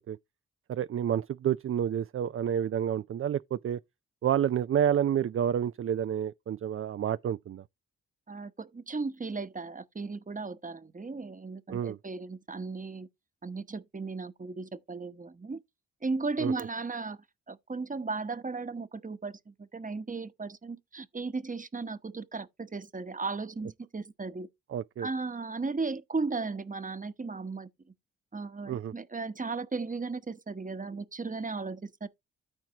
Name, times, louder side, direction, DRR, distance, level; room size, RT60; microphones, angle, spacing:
voice 1, 0.7-3.8 4.2-7.6 11.7-12.0 16.4-16.5 24.7-25.1 28.7-28.9, right 9 dB, 40° right, 0.4 m, -29 dB
voice 2, 8.3-13.1 13.4-15.6 16.0-17.2 17.5-24.5 25.0-27.7 28.3-32.1, right 4 dB, 25° right, 1.0 m, -36 dB
13.5 x 4.5 x 2.9 m
supercardioid pair, 45°, 35 cm